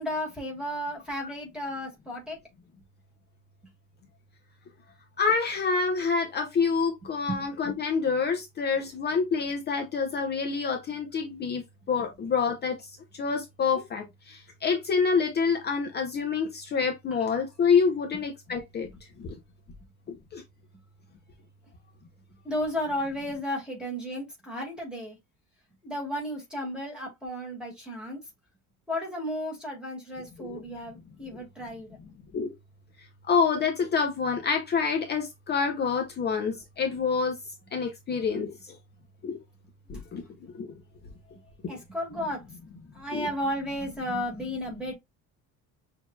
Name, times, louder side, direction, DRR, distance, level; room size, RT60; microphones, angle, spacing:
voice 1, 0.0-2.4 7.3-7.4 7.7-7.8 18.1-18.2 22.4-25.2 25.8-28.2 28.9-32.0 41.7-42.6 42.9-44.9, equal, ahead, 1.8 m, -33 dB
voice 2, 5.2-11.6 11.9-12.8 13.1-18.9 19.2-19.4 20.3-20.4 30.5-30.6 32.3-32.5 33.3-37.4 37.7-38.8 39.2-39.4 39.9-40.7 43.1-43.3, left 5 dB, 30° left, 0.6 m, -27 dB
6.2 x 2.8 x 2.2 m
cardioid pair, 180°, 35 cm